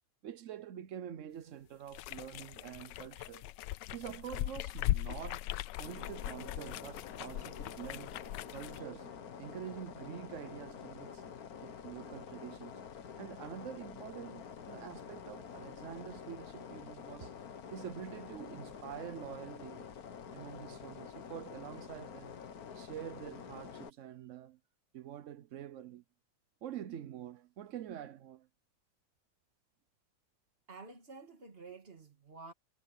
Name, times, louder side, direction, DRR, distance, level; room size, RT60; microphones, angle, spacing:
voice 1, 0.2-3.5 3.9-5.5 5.8-8.2 8.5-9.1 9.4-11.2 11.6-12.9 13.2-17.4 17.7-19.9 20.3-22.4 22.7-24.6 24.9-26.0 26.6-28.5, right 9 dB, 65° right, 0.7 m, -46 dB
sound 1, 1.9-8.8, left 15 dB, 75° left, 1.1 m, -39 dB
sound 2, 5.8-23.9, left 7 dB, 50° left, 1.6 m, -48 dB
voice 2, 30.7-32.5, right 3 dB, 30° right, 2.1 m, -50 dB
omnidirectional pair, 2.1 m